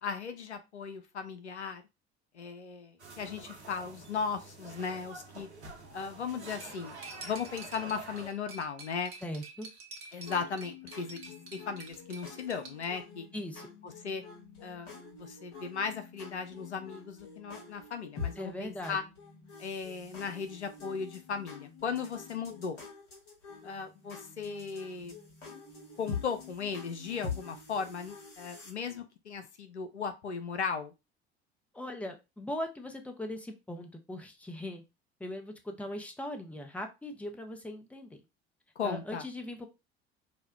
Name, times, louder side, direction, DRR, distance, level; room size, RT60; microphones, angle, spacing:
voice 1, 0.0-1.8 2.3-5.5 5.9-7.0 7.2-9.1 10.1-13.3 13.8-14.2 14.6-19.0 19.6-22.8 23.6-25.1 26.0-30.9 38.8-39.2, left 5 dB, 90° left, 8 dB, 0.5 m, -37 dB
sound 1, 3.0-8.3, right 3 dB, 90° right, 0.6 m, -48 dB
Cutlery silverware, 6.6-12.9, right 3 dB, 40° right, 1.0 m, -48 dB
voice 2, 9.2-9.7 13.3-13.7 18.4-19.0 31.7-34.8 35.2-38.2 38.8-39.7, left 1 dB, 5° left, 5 dB, 0.6 m, -39 dB
sound 2, 10.3-28.7, left 5 dB, 65° left, 1.4 m, -46 dB
5.0 x 2.1 x 2.2 m, 0.26 s
figure-of-eight pair, 60°, 33 cm